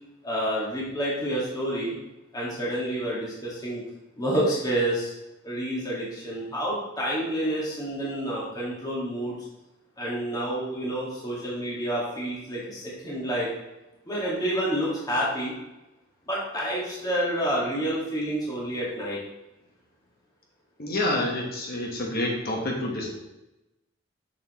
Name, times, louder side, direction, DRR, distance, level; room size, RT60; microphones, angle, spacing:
voice 1, 0.2-2.0 2.3-3.8 4.2-5.1 5.4-9.4 10.0-13.5 14.1-15.5 16.3-19.2, right 1 dB, 20° left, -6 dB, 1.9 m, -28 dB
voice 2, 20.8-23.2, left 1 dB, 50° left, -1 dB, 1.2 m, -28 dB
7.4 x 6.6 x 3.1 m, 0.98 s
head